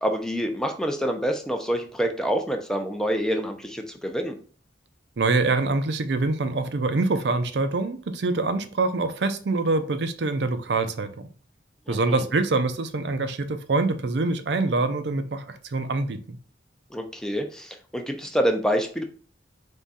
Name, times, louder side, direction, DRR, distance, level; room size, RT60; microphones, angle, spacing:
voice 1, 0.0-4.4 11.9-12.2 16.9-19.0, equal, 5° left, 4 dB, 0.5 m, -27 dB
voice 2, 5.2-11.2 11.9-16.4, right 3 dB, 65° right, 9 dB, 0.5 m, -25 dB
3.7 x 3.5 x 4.1 m, 0.42 s
head